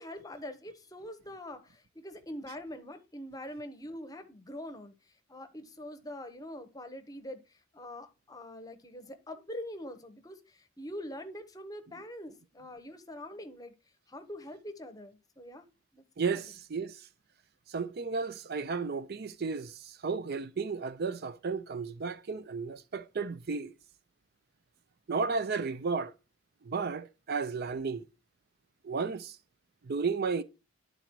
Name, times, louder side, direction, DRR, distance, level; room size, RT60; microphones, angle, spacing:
voice 1, 0.0-4.9 5.3-13.7 14.1-15.6 15.9-16.4, left 1 dB, 20° left, 0.8 m, -44 dB
voice 2, 16.2-17.0 17.7-23.7 25.1-26.1 26.7-28.0 28.8-29.4 29.9-30.4, right 4 dB, 50° right, 0.5 m, -33 dB
10.5 x 4.0 x 4.5 m
head